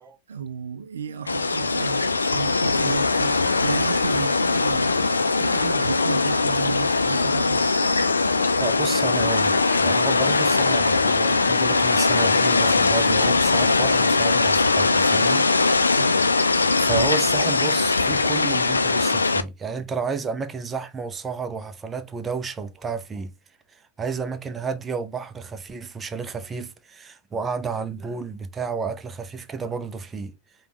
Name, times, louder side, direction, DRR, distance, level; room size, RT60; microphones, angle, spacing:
voice 1, 0.3-5.0 5.4-7.6 15.9-16.2, right 7 dB, 70° right, 0.3 m, -33 dB
sound 1, 1.3-19.4, left 3 dB, 80° left, 0.4 m, -21 dB
voice 2, 8.1-15.5 16.8-23.3 23.7-30.3, right 5 dB, 20° right, 0.5 m, -31 dB
5.1 x 2.3 x 2.9 m
figure-of-eight pair, 90°, 0 cm